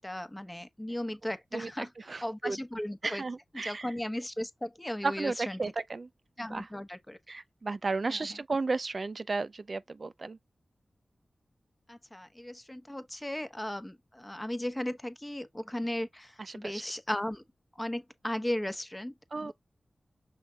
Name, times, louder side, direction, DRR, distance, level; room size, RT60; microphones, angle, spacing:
voice 1, 0.0-1.9 2.2-3.2 3.5-5.6 6.4-7.2 8.1-8.2 11.9-17.4 17.8-19.5, left 1 dB, 15° left, 1.0 m, -36 dB
voice 2, 1.5-2.6 3.0-3.9 5.0-6.1 6.4-6.7 7.3-10.4 16.4-16.9 19.3-19.5, right 3 dB, 55° right, 0.4 m, -34 dB
5.6 x 3.8 x 2.3 m
cardioid pair, 40°, 0 cm